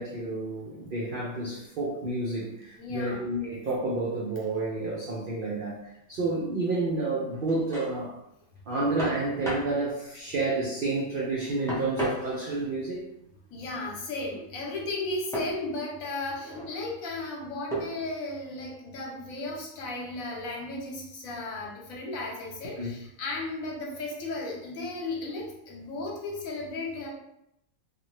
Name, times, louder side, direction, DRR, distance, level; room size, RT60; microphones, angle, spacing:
voice 1, 0.0-8.2 8.7-13.1 22.8-22.9, right 2 dB, 60° right, -4 dB, 0.5 m, -30 dB
voice 2, 2.8-3.3 13.5-27.1, left 2 dB, 75° left, -2 dB, 1.2 m, -35 dB
sound 1, 7.3-7.9 9.0-9.8 11.7-12.7 15.3-15.6 16.3-16.8 17.7-18.1, right 1 dB, 5° left, 0.3 m, -34 dB
2.7 x 2.4 x 3.0 m, 0.81 s
omnidirectional pair, 1.5 m